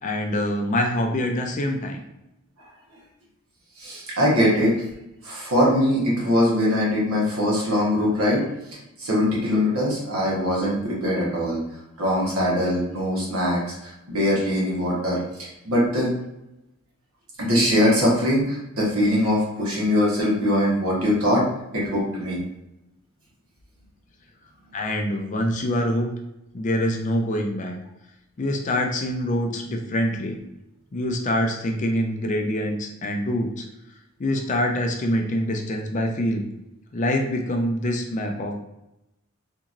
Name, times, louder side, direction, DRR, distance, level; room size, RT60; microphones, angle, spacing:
voice 1, 0.0-2.0 24.7-26.1 26.5-27.8 28.4-30.4 30.9-33.7 34.2-36.4 36.9-38.5, left 1 dB, 35° left, 3 dB, 0.4 m, -25 dB
voice 2, 3.8-4.8 5.2-8.4 9.0-11.6 12.0-16.1 17.4-21.5 21.7-22.4, left 1 dB, 80° right, -4 dB, 1.2 m, -22 dB
2.9 x 2.6 x 2.5 m, 0.89 s
head